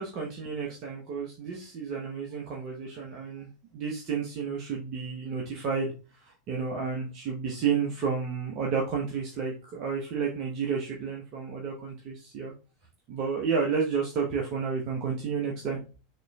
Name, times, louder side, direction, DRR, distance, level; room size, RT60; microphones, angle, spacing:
voice 1, 0.0-5.9 6.2-12.5 13.1-15.8, right 5 dB, 45° right, -1 dB, 0.9 m, -31 dB
6.4 x 3.1 x 2.3 m, 0.32 s
figure-of-eight pair, 80°, 0 cm